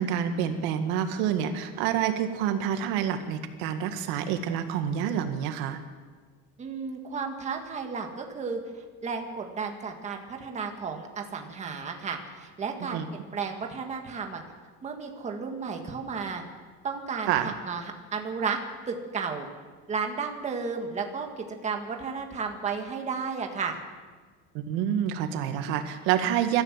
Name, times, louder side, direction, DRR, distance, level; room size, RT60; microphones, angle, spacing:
voice 1, 0.0-5.8 12.8-13.1 17.3-17.5 24.5-26.6, right 9 dB, 70° right, 7 dB, 2.0 m, -28 dB
voice 2, 6.6-8.6 9.0-14.4 14.8-16.4 16.8-17.8 18.1-18.6 18.9-19.5 19.9-23.8, right 5 dB, 20° right, 3 dB, 1.8 m, -33 dB
24.5 x 14.0 x 7.6 m, 1.5 s
cardioid pair, 175°, 37 cm